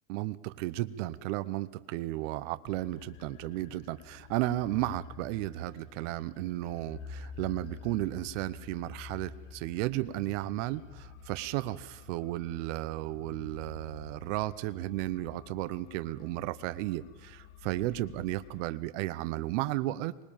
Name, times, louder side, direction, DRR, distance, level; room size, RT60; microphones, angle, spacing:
voice 1, 0.1-20.2, right 16 dB, 60° right, 14 dB, 1.0 m, -34 dB
sound 1, 2.7-18.7, left 7 dB, 45° left, 1.7 m, -51 dB
Bowed string instrument, 6.9-11.1, left 7 dB, 70° left, 6.7 m, -50 dB
25.0 x 20.0 x 7.3 m, 1.2 s
hypercardioid pair, 110°, 41 cm